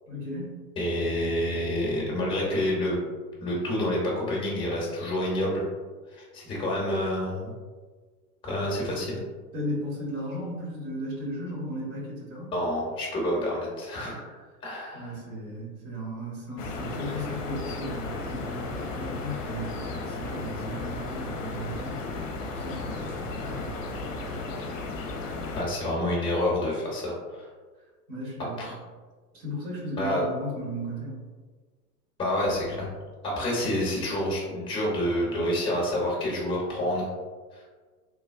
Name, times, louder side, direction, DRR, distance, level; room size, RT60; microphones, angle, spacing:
voice 1, 0.1-0.6 9.5-12.5 14.9-22.0 22.5-24.2 28.1-28.6 29.3-31.2, equal, 55° right, -4 dB, 1.3 m, -36 dB
voice 2, 0.8-3.0 3.4-5.6 6.1-7.5 8.4-9.2 12.5-14.4 14.6-15.1 25.6-27.5 28.6-28.7 30.0-30.2 32.2-32.9 33.2-37.1 37.5-37.6, left 1 dB, 10° left, -4 dB, 0.7 m, -28 dB
sound 1, 16.6-25.6, left 3 dB, 55° left, 0.6 m, -34 dB
3.2 x 2.2 x 2.3 m, 1.4 s
figure-of-eight pair, 95°, 47 cm